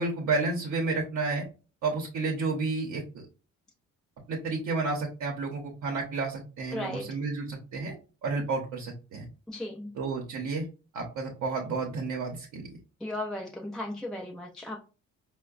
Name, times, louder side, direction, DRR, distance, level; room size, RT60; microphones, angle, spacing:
voice 1, 0.0-1.5 1.8-3.2 4.3-7.9 8.2-9.3 9.9-10.7 10.9-12.7, right 3 dB, 65° right, 0.8 m, -31 dB
voice 2, 6.7-7.1 9.5-10.0 13.0-14.8, left 1 dB, ahead, 0.4 m, -36 dB
4.3 x 2.1 x 2.4 m
cardioid pair, 90°, 30 cm